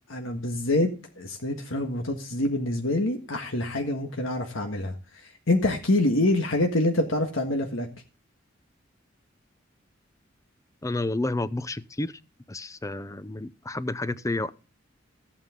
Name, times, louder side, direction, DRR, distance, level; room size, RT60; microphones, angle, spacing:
voice 1, 0.1-4.9 5.2-7.9, left 1 dB, 80° left, 1.6 m, -26 dB
voice 2, 10.8-12.1 12.5-14.5, left 2 dB, 15° left, 0.5 m, -30 dB
14.5 x 8.7 x 3.7 m
head